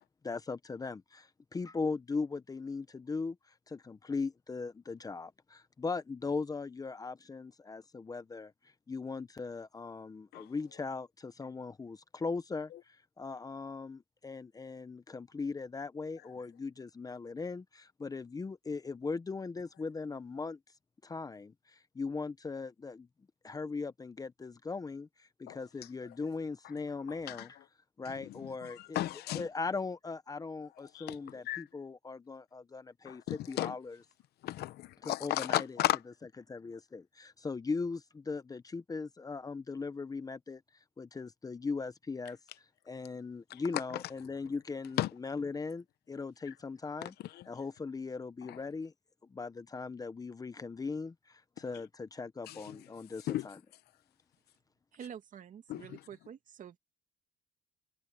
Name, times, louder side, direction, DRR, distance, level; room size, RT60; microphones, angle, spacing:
voice 1, 0.2-3.4 3.7-8.5 8.9-20.6 21.0-23.1 23.4-27.6 28.0-29.0 29.3-34.0 35.0-35.7 36.5-40.6 41.0-42.4 42.9-47.1 47.5-48.9 49.2-53.6, left 4 dB, 20° left, 0.8 m, -39 dB
voice 2, 28.0-29.4 30.9-31.6 33.0-33.8 34.4-36.0 43.5-44.0 45.0-45.1 47.0-47.5 48.5-48.6 52.5-52.8 53.3-53.5 55.7-56.0, left 15 dB, 75° left, 0.9 m, -35 dB
voice 3, 54.9-56.8, right 8 dB, 50° right, 2.4 m, -48 dB
cardioid pair, 110°, 17 cm